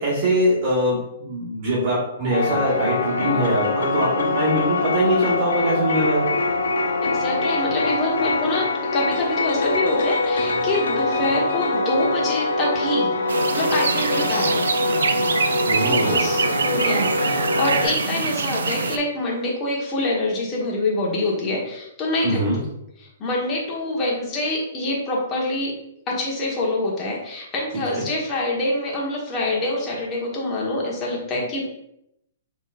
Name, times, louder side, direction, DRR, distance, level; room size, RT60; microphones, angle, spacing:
voice 1, 0.0-6.3 15.7-16.2 22.2-22.6 27.9-28.0, equal, 45° right, -7 dB, 1.6 m, -22 dB
sound 1, 2.3-17.9, left 2 dB, 85° left, 0.6 m, -23 dB
voice 2, 7.0-8.6 8.9-13.1 13.5-14.6 15.8-22.4 23.2-25.7 26.1-31.7, left 2 dB, 25° left, -3 dB, 1.2 m, -25 dB
sound 2, 13.3-19.0, right 4 dB, 90° right, 0.4 m, -24 dB
5.6 x 3.2 x 2.4 m, 0.80 s
hypercardioid pair, 140°, 0 cm